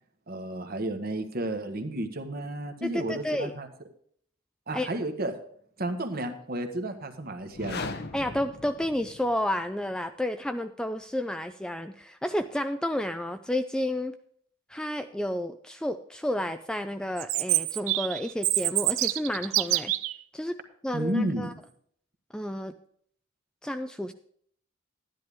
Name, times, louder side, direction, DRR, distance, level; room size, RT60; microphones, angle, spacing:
voice 1, 0.3-3.7 4.7-5.3 5.8-7.9 20.9-21.5, right 1 dB, 45° right, 6 dB, 1.3 m, -32 dB
voice 2, 2.8-3.5 4.7-4.9 8.1-14.1 14.7-19.9 20.3-20.6 20.8-21.5 22.3-22.7 23.6-24.1, left 1 dB, 5° left, 8 dB, 0.3 m, -31 dB
sound 1, 7.4-9.5, left 3 dB, 50° left, 0.8 m, -38 dB
Chirp tweet, 17.2-20.2, right 16 dB, 80° right, 0.5 m, -26 dB
12.0 x 10.5 x 3.5 m, 0.62 s
head